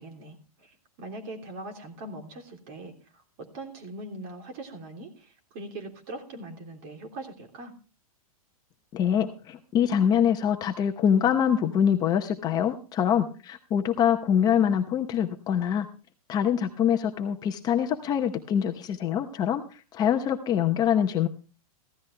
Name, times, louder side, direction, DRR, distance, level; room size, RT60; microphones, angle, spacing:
voice 1, 0.0-2.9 3.4-7.7, right 2 dB, 40° right, 4 dB, 3.2 m, -41 dB
voice 2, 8.9-15.9 16.3-21.3, left 9 dB, 20° left, 6 dB, 0.7 m, -24 dB
15.0 x 12.5 x 3.3 m, 0.35 s
hypercardioid pair, 155°, 19 cm